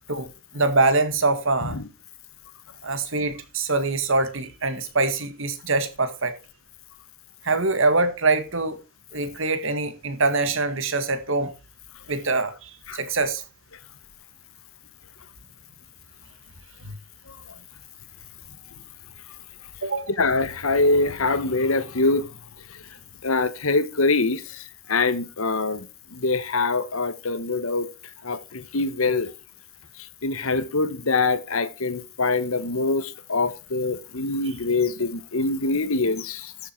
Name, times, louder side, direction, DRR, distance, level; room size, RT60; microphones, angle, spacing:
voice 1, 0.5-1.8 2.8-6.4 7.4-8.8 9.1-11.5 12.1-13.4 16.8-16.9 19.8-20.1, right 3 dB, 65° right, 2.0 m, -24 dB
voice 2, 20.2-22.3 22.7-22.8 23.2-27.9 28.2-29.3 30.2-36.5, left 3 dB, 75° left, 1.2 m, -24 dB
13.0 x 7.6 x 4.6 m
head